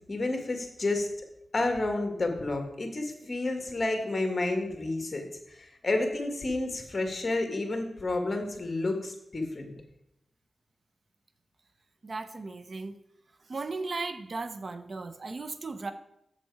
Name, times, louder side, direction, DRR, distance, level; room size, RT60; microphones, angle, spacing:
voice 1, 0.1-1.1 1.5-9.7, left 2 dB, 40° left, 4 dB, 1.6 m, -30 dB
voice 2, 12.0-13.0 13.5-15.9, right 3 dB, 55° right, 11 dB, 0.7 m, -36 dB
7.5 x 6.8 x 4.7 m, 0.81 s
cardioid pair, 70°, 0 cm